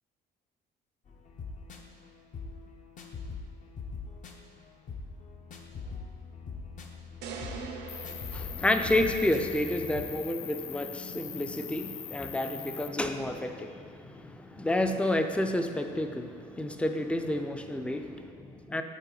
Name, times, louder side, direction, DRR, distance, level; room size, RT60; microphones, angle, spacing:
sound 1, 1.1-10.0, left 4 dB, 50° left, 0.7 m, -42 dB
sound 2, 7.2-9.5, right 5 dB, 80° right, 0.6 m, -43 dB
Cricket, 7.9-12.9, left 10 dB, 85° left, 0.5 m, -42 dB
voice 1, 8.3-18.8, left 1 dB, 5° left, 6 dB, 0.4 m, -30 dB
8.2 x 4.1 x 3.8 m, 2.2 s
cardioid pair, 110°, 17 cm